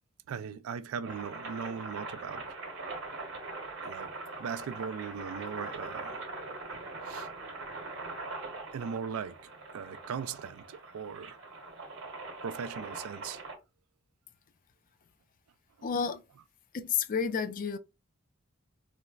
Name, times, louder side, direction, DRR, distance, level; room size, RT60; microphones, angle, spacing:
voice 1, 0.3-2.4 3.8-4.1 4.4-6.2 7.0-7.3 8.7-9.4 9.7-11.4 12.4-13.4, right 7 dB, 80° right, 0.3 m, -38 dB
sound 1, 1.1-13.6, right 3 dB, 60° right, 0.9 m, -42 dB
voice 2, 15.8-16.2 16.7-17.8, left 6 dB, 40° left, 0.4 m, -30 dB
4.1 x 2.0 x 2.3 m
head